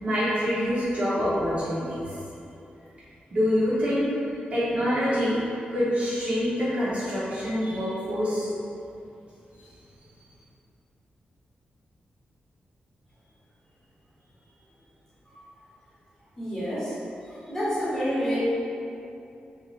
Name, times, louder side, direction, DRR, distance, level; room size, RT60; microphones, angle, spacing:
voice 1, 0.0-2.0 3.3-4.1 4.5-5.4 5.7-8.5, equal, 40° right, -10 dB, 0.8 m, -25 dB
voice 2, 16.4-17.0 17.5-18.4, equal, 15° left, -11 dB, 0.9 m, -28 dB
2.7 x 2.4 x 3.1 m, 2.7 s
wide cardioid pair, 155°, 3 cm